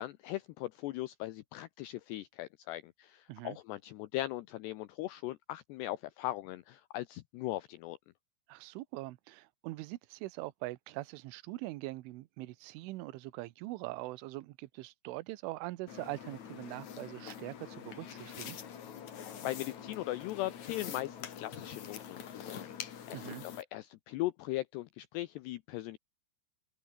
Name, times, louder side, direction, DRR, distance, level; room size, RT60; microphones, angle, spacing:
voice 1, 0.0-8.0 19.4-26.0, left 16 dB, 80° left, 2.5 m, -39 dB
voice 2, 8.5-18.6 23.1-23.5, right 19 dB, 80° right, 3.4 m, -42 dB
sound 1, 15.9-23.6, left 8 dB, 45° left, 2.8 m, -45 dB
open air
omnidirectional pair, 5.6 m